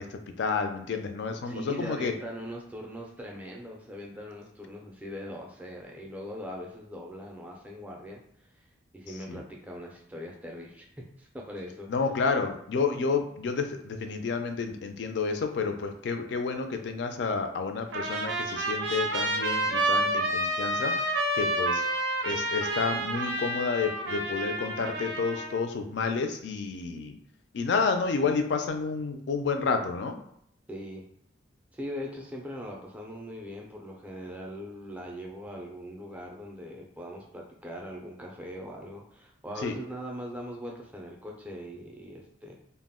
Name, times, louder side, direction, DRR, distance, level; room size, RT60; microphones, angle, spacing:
voice 1, 0.0-2.1 9.3-9.4 11.9-21.8 22.2-27.1 27.5-30.1 39.6-39.7, left 4 dB, 65° left, 6 dB, 0.3 m, -30 dB
voice 2, 1.4-8.2 8.9-10.9 11.2-11.9 30.7-31.1 31.7-42.5, equal, 10° right, -1 dB, 0.3 m, -40 dB
Trumpet, 17.9-25.6, right 1 dB, 75° right, 0.4 m, -29 dB
2.2 x 2.0 x 3.5 m, 0.70 s
head